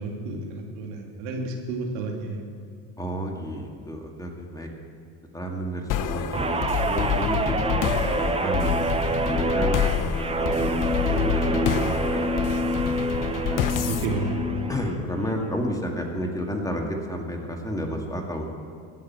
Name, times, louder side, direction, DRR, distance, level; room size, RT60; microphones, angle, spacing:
voice 1, 0.0-2.4 13.9-14.7, right 3 dB, 70° right, 1 dB, 2.5 m, -31 dB
voice 2, 3.0-4.7 5.3-8.7 9.3-12.8 13.5-13.6 14.7-18.5, equal, 10° left, 1 dB, 2.1 m, -31 dB
sound 1, 5.9-15.3, left 9 dB, 45° left, 1.0 m, -28 dB
Guitar, 6.3-14.9 15.3-15.6, right 2 dB, 15° right, 0.8 m, -27 dB
15.0 x 6.7 x 9.3 m, 2.1 s
supercardioid pair, 95°, 43 cm